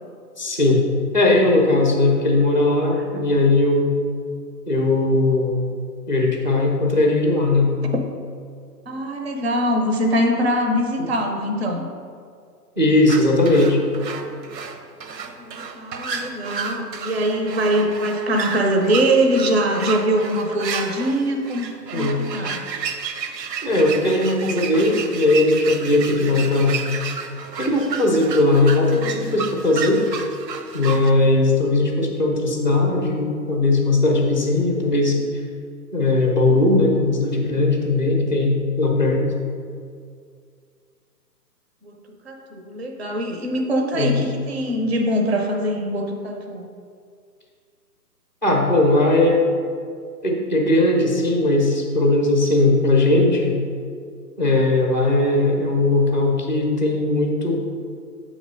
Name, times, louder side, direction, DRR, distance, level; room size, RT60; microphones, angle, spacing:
voice 1, 0.4-0.8 1.1-3.9 4.7-5.6 6.1-7.7 11.0-11.1 12.8-13.8 21.9-22.2 23.6-26.8 27.6-30.0 30.7-35.3 35.9-39.3 43.9-44.2 48.4-49.5 50.2-53.6 54.4-57.5, left 2 dB, 30° left, 1 dB, 0.5 m, -18 dB
voice 2, 8.9-11.9 15.2-22.6 41.8-41.9 42.2-46.7, right 1 dB, 40° right, 2 dB, 0.5 m, -23 dB
sound 1, 13.1-31.1, right 6 dB, 85° right, 0.8 m, -32 dB
7.4 x 3.1 x 5.3 m, 2.2 s
hypercardioid pair, 175°, 49 cm